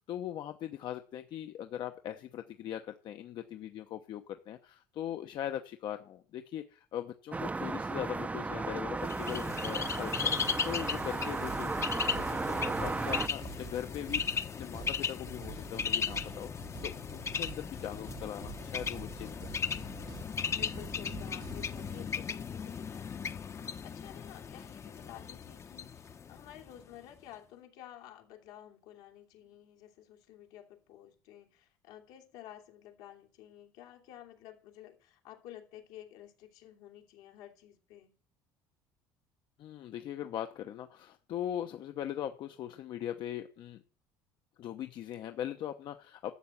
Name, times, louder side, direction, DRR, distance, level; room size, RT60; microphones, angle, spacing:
voice 1, 0.0-19.6 39.6-43.8 44.6-46.3, left 11 dB, 60° left, 0.9 m, -40 dB
sound 1, 7.3-13.3, right 3 dB, 15° right, 0.6 m, -35 dB
Bird, 9.0-26.8, left 6 dB, 35° left, 0.8 m, -37 dB
sound 2, 11.4-22.1, right 7 dB, 50° right, 1.2 m, -48 dB
voice 2, 20.5-38.1, left 12 dB, 80° left, 2.8 m, -52 dB
12.5 x 7.6 x 7.2 m
supercardioid pair, 90°, 9 cm